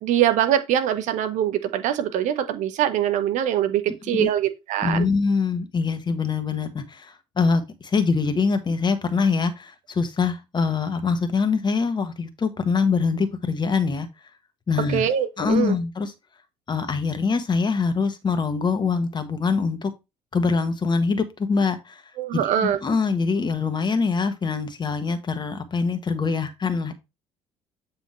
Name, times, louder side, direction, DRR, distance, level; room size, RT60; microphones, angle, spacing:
voice 1, 0.0-5.1 14.9-15.8 22.2-22.8, right 10 dB, 55° right, 0.9 m, -23 dB
voice 2, 4.8-14.1 14.7-15.0 15.4-16.1 16.7-19.9 20.3-22.0 22.3-26.9, left 5 dB, 30° left, 1.4 m, -24 dB
7.4 x 5.2 x 3.1 m
figure-of-eight pair, 55°, 15 cm